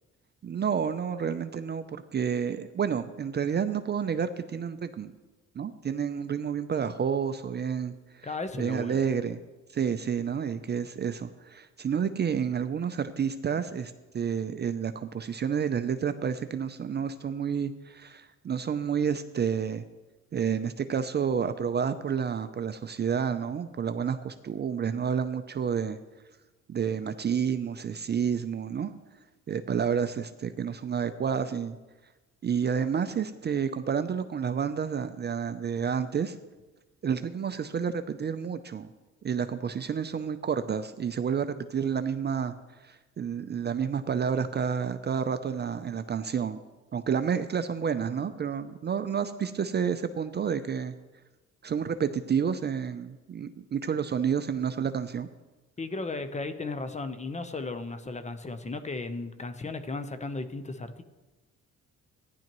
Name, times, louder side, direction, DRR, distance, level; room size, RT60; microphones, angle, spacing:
voice 1, 0.4-1.8 2.1-5.1 5.6-8.3 8.6-9.4 9.7-19.8 20.3-26.0 26.7-28.9 29.5-31.8 32.4-36.4 37.0-38.9 39.2-42.5 42.8-46.6 46.9-50.9 51.6-55.3, right 7 dB, 35° right, 10 dB, 0.5 m, -30 dB
voice 2, 8.2-9.1 55.8-61.0, left 3 dB, 25° left, 9 dB, 0.8 m, -35 dB
15.0 x 10.5 x 3.0 m, 1.2 s
cardioid pair, 90°, 30 cm